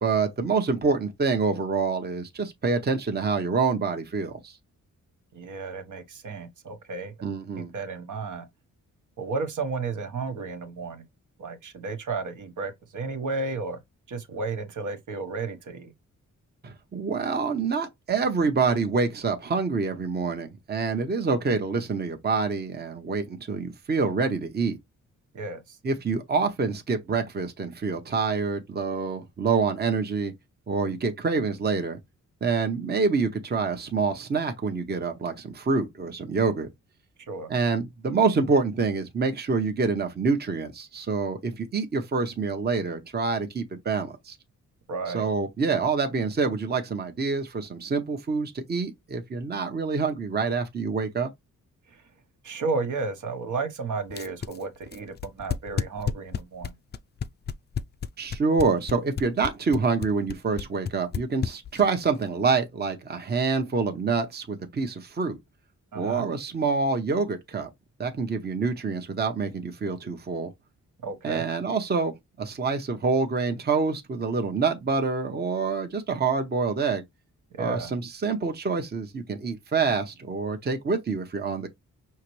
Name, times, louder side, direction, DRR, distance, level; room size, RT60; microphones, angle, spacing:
voice 1, 0.0-4.6 7.2-7.7 16.6-24.8 25.8-30.3 30.7-32.0 32.4-36.7 37.5-44.4 45.1-51.3 58.2-65.4 65.9-67.7 68.0-70.5 71.2-77.0 77.6-81.7, right 4 dB, 30° right, 0.8 m, -26 dB
voice 2, 5.3-7.1 7.6-8.5 9.2-11.0 11.4-13.8 14.1-15.9 25.3-25.8 37.3-37.5 44.9-45.3 52.4-56.7 65.9-66.3 71.0-71.4 77.6-77.9, right 4 dB, 70° right, 1.2 m, -33 dB
sound 1, 54.1-62.0, left 7 dB, 35° left, 0.4 m, -31 dB
5.7 x 2.9 x 3.1 m
wide cardioid pair, 135°, 32 cm